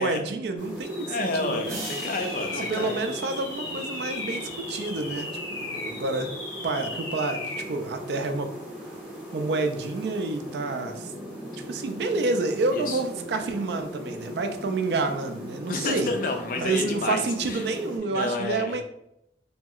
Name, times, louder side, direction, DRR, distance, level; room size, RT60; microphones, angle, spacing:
voice 1, 0.0-1.8 2.5-6.3 6.6-8.5 9.3-11.1 11.7-16.1 16.6-18.8, right 3 dB, 70° right, 6 dB, 0.3 m, -29 dB
sound 1, 0.6-18.0, equal, 5° right, 0.7 m, -39 dB
sound 2, 0.8-7.8, left 2 dB, 80° left, 0.8 m, -37 dB
voice 2, 1.1-3.0 12.7-13.0 15.7-17.7 18.1-18.8, left 3 dB, 50° left, 4 dB, 0.4 m, -30 dB
sound 3, 1.6-4.4, right 1 dB, 40° right, 0.7 m, -41 dB
2.8 x 2.7 x 2.3 m, 0.78 s
head